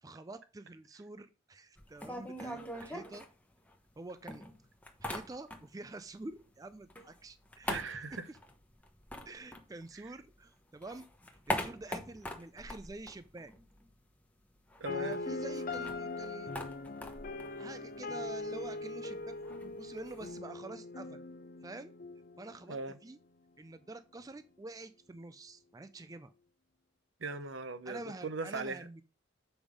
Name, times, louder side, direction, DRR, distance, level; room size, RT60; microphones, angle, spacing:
voice 1, 0.0-3.3 4.0-4.4 5.0-7.8 8.3-8.4 9.3-11.1 11.5-13.5 14.9-16.5 17.5-21.2 21.6-21.9 22.4-23.2 23.6-26.3 27.9-29.0, right 2 dB, 20° right, 0.4 m, -47 dB
sound 1, 1.8-4.0 4.3-5.9 6.2-10.3 10.7-14.0 14.2-14.3 14.6-20.4, left 1 dB, 10° left, 0.9 m, -43 dB
voice 2, 7.7-8.3 14.8-15.2 22.7-23.0 27.2-28.8, right 3 dB, 75° right, 0.9 m, -39 dB
sound 2, 14.9-22.9, left 2 dB, 45° left, 0.5 m, -41 dB
7.1 x 5.3 x 5.0 m
head